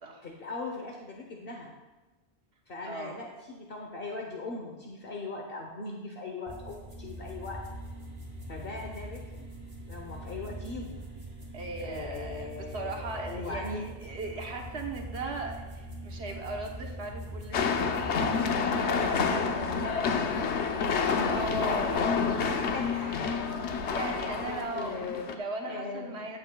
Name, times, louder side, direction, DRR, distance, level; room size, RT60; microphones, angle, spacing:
voice 1, 0.2-1.7 2.7-7.6 8.5-9.5 9.9-11.0 11.8-13.9 14.4-14.6 19.7-21.5 21.9-25.4 25.7-26.4, left 3 dB, 60° left, 0 dB, 1.1 m, -40 dB
voice 2, 2.8-3.2 11.5-17.8 18.4-20.2 21.2-22.0 22.5-22.7 23.8-25.1 25.3-26.4, right 2 dB, 75° right, 1 dB, 1.3 m, -38 dB
sound 1, 6.5-18.5, right 1 dB, 50° right, 2.1 m, -42 dB
sound 2, 17.5-25.3, left 5 dB, 85° left, 1.0 m, -28 dB
15.0 x 7.8 x 2.3 m, 1.2 s
omnidirectional pair, 1.1 m